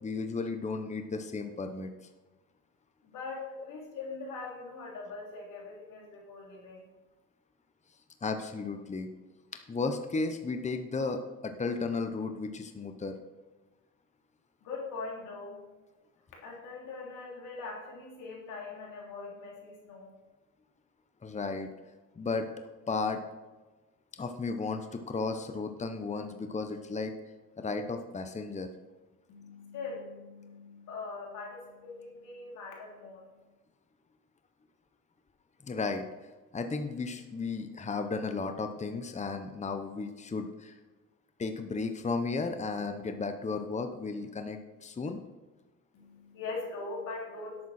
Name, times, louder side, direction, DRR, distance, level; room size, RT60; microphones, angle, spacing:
voice 1, 0.0-1.9 8.2-9.1 9.7-13.1 21.2-21.7 22.2-22.5 22.9-23.2 24.2-27.1 27.6-28.7 35.6-36.0 36.5-40.7 41.4-45.2, left 4 dB, 25° left, 7 dB, 0.9 m, -34 dB
voice 2, 3.0-6.8 14.6-15.7 16.4-20.1 29.3-33.3 45.9-47.7, left 3 dB, 90° left, -2 dB, 3.4 m, -42 dB
11.0 x 8.7 x 4.3 m, 1.2 s
cardioid pair, 90°, 30 cm